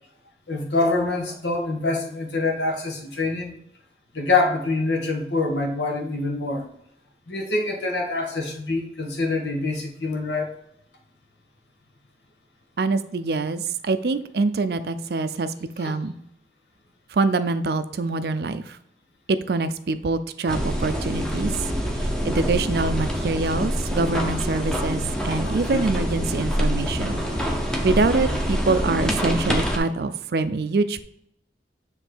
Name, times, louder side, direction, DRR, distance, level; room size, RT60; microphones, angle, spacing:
voice 1, 0.5-3.6 4.1-6.6 7.3-10.5 15.8-15.9 25.4-25.8 28.8-28.9, left 3 dB, 80° left, 1 dB, 1.4 m, -25 dB
voice 2, 12.8-16.1 17.1-18.8 19.3-21.6 22.0-27.2 27.8-31.0, right 3 dB, 60° right, 12 dB, 0.4 m, -25 dB
sound 1, 20.5-29.8, equal, 5° left, 0.8 m, -26 dB
7.2 x 3.2 x 4.3 m, 0.76 s
head